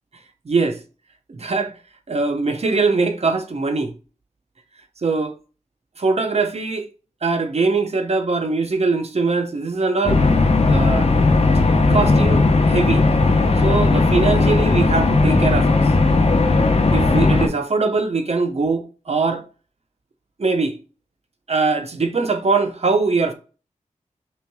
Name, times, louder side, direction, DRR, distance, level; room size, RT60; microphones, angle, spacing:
voice 1, 0.5-0.8 1.3-1.8 2.1-3.9 5.0-5.4 6.0-6.9 7.2-10.2 10.7-11.1 11.9-13.0 13.6-15.8 16.9-19.5 20.4-20.8 21.5-23.3, right 3 dB, 55° right, 0.8 m, -21 dB
sound 1, 10.0-17.5, left 3 dB, 50° left, 0.9 m, -16 dB
5.6 x 3.2 x 2.3 m
wide cardioid pair, 60°, 13 cm